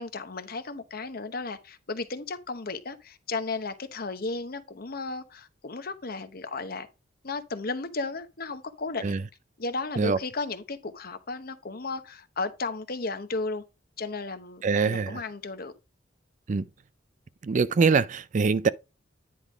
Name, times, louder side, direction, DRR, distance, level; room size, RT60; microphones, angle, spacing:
voice 1, 0.0-6.9 7.2-9.1 9.6-13.6 14.0-15.7, left 3 dB, 50° left, 0.9 m, -34 dB
voice 2, 14.6-15.2 16.5-16.7 17.4-18.7, right 5 dB, 40° right, 0.4 m, -23 dB
10.0 x 3.6 x 4.9 m
head